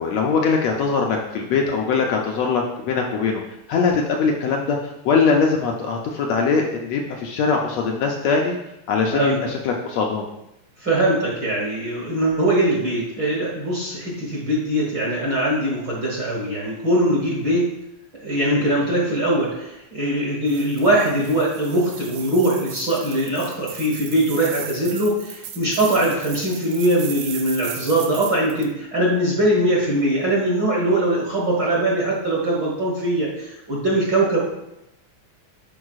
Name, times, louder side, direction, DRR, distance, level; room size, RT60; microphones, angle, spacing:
voice 1, 0.0-3.4 3.7-4.8 5.0-8.6 8.9-10.3, left 5 dB, 75° left, 1 dB, 1.7 m, -21 dB
voice 2, 9.1-9.5 10.8-17.7 18.2-34.4, right 1 dB, 45° right, -4 dB, 1.8 m, -21 dB
sound 1, 20.5-28.7, right 8 dB, 90° right, 1.2 m, -37 dB
11.0 x 4.8 x 2.4 m, 0.85 s
omnidirectional pair, 3.4 m